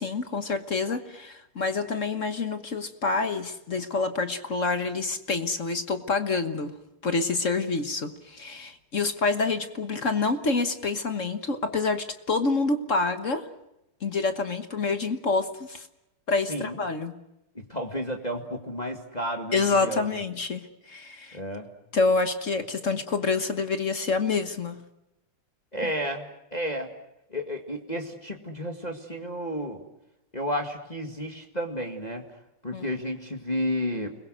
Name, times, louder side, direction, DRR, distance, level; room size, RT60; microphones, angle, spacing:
voice 1, 0.0-6.7 7.0-13.5 14.0-15.9 16.3-17.2 19.5-21.4 21.9-24.8 25.8-25.9 32.7-32.9, left 3 dB, 40° left, 8 dB, 1.4 m, -27 dB
voice 2, 16.5-16.8 17.5-20.1 21.3-21.7 25.7-26.9 27.3-29.8 30.3-32.3 32.6-34.2, equal, 20° left, 3 dB, 2.0 m, -32 dB
30.0 x 21.5 x 6.3 m, 0.88 s
omnidirectional pair, 2.4 m